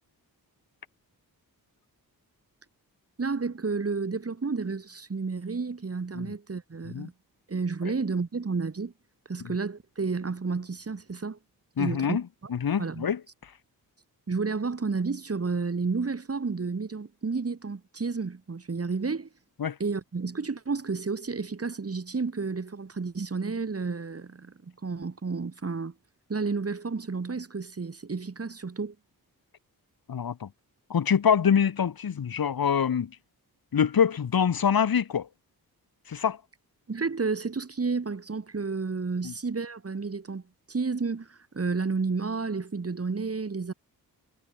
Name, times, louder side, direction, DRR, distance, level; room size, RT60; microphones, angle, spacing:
voice 1, 3.2-7.1 7.5-8.9 9.3-11.4 11.8-12.2 12.8-13.1 14.3-19.3 19.8-25.9 26.3-28.9 36.9-40.4 40.7-43.7, right 4 dB, 40° right, 4.8 m, -31 dB
voice 2, 11.8-12.2 12.5-13.2 19.6-19.8 30.1-30.5 30.9-33.1 33.7-35.3 36.1-36.4 39.2-39.3, left 7 dB, 70° left, 2.8 m, -25 dB
wide cardioid pair, 95°, 37 cm